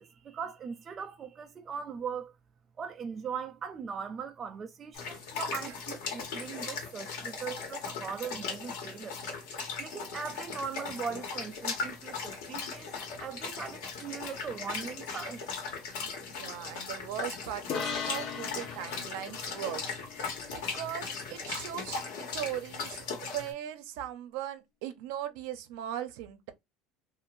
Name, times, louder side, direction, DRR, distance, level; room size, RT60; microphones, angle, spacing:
voice 1, 0.0-2.3 2.8-9.2 9.8-15.5, right 6 dB, 30° right, 0.3 m, -40 dB
sound 1, 4.9-23.5, left 5 dB, 80° left, 1.3 m, -38 dB
voice 2, 16.3-20.0 20.5-22.0 22.3-26.5, right 11 dB, 75° right, 0.6 m, -39 dB
sound 2, 17.7-21.2, left 7 dB, 45° left, 0.6 m, -39 dB
2.5 x 2.5 x 3.0 m
supercardioid pair, 135°, 0 cm